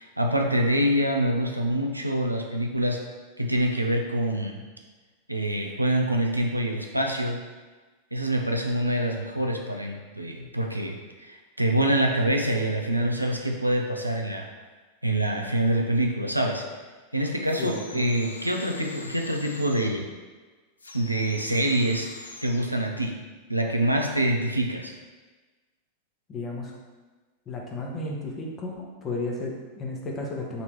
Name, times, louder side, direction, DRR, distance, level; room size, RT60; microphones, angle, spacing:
voice 1, 0.0-3.0 3.4-4.6 5.3-7.4 8.1-14.5 15.0-16.6 17.1-20.1 20.9-22.1 22.4-23.2 23.5-24.9, right 1 dB, 85° right, 2 dB, 0.5 m, -25 dB
sound 1, 17.4-20.0 20.8-22.7, left 3 dB, 75° left, 0.4 m, -44 dB
voice 2, 17.6-18.0 26.3-26.7 27.5-30.6, left 2 dB, 25° left, -1 dB, 0.9 m, -33 dB
4.0 x 2.9 x 4.6 m, 1.3 s
figure-of-eight pair, 90°, 0 cm